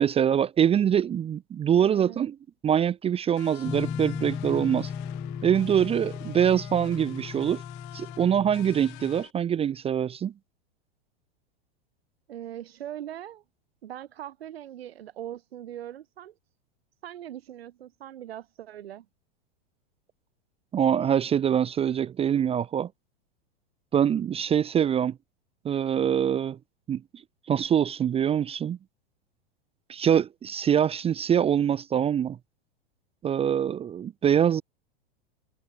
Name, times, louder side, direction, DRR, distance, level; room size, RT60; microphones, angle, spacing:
voice 1, 0.0-2.4 2.6-4.9 5.4-7.6 7.9-10.3 20.7-22.9 23.9-25.2 25.6-26.6 26.9-27.0 27.5-28.8 29.9-32.4 33.2-34.6, right 9 dB, 20° right, 0.6 m, -24 dB
voice 2, 1.8-2.3 12.3-13.4 13.8-16.4 17.0-19.1, right 11 dB, 80° right, 4.3 m, -41 dB
sound 1, 3.4-9.3, left 28 dB, 55° left, 2.4 m, -47 dB
sound 2, 3.6-9.2, left 6 dB, 20° left, 2.2 m, -36 dB
hypercardioid pair, 115°, 30 cm